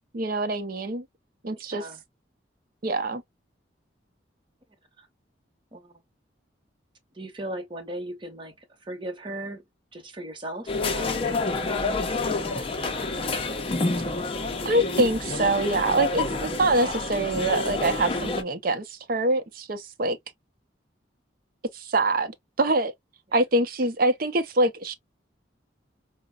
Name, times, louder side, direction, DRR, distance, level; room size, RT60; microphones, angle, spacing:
voice 1, 0.1-1.0 1.4-1.8 2.8-3.2 14.6-20.2 21.7-22.9 23.3-24.9, right 2 dB, 50° right, 0.6 m, -25 dB
voice 2, 1.7-2.0 5.0-5.1 5.7-6.0 7.1-12.2 12.5-13.1 16.8-17.0 23.3-23.4, right 1 dB, 25° right, 0.9 m, -38 dB
sound 1, 10.7-18.4, left 3 dB, 30° left, 0.5 m, -28 dB
5.0 x 2.1 x 2.2 m
head